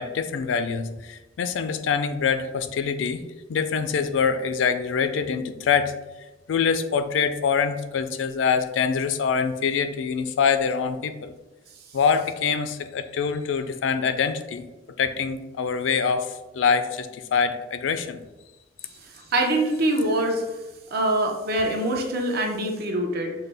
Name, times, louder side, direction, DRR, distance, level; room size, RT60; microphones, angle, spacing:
voice 1, 0.0-3.2 3.5-6.0 6.5-11.3 11.9-14.7 15.0-18.2, left 6 dB, 80° left, 10 dB, 0.4 m, -25 dB
voice 2, 19.3-20.4 20.9-23.3, right 1 dB, 55° right, 2 dB, 0.7 m, -24 dB
5.5 x 2.1 x 3.3 m, 1.1 s
head